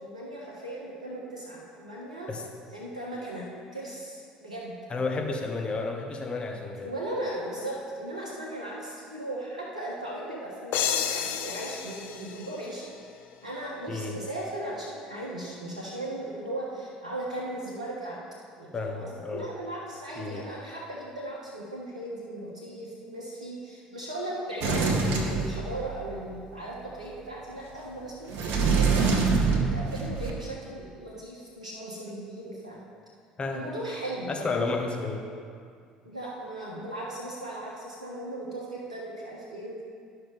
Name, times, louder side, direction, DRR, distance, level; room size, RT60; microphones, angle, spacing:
voice 1, 0.0-2.3 2.7-3.5 3.7-4.7 6.8-12.9 13.4-18.2 18.6-29.1 29.5-32.8 33.5-34.7 36.0-39.8, right 1 dB, 85° right, -4 dB, 1.2 m, -37 dB
voice 2, 4.9-6.9 13.9-14.2 18.7-19.5 20.2-20.5 33.4-33.6 34.3-35.2, left 3 dB, 30° left, 2 dB, 1.2 m, -31 dB
sound 1, 10.7-13.4, left 9 dB, 60° left, 0.5 m, -31 dB
Sliding door, 24.6-26.1 28.3-30.3, right 4 dB, 60° right, 1.0 m, -25 dB
12.0 x 5.7 x 3.7 m, 2.2 s
figure-of-eight pair, 60°, 4 cm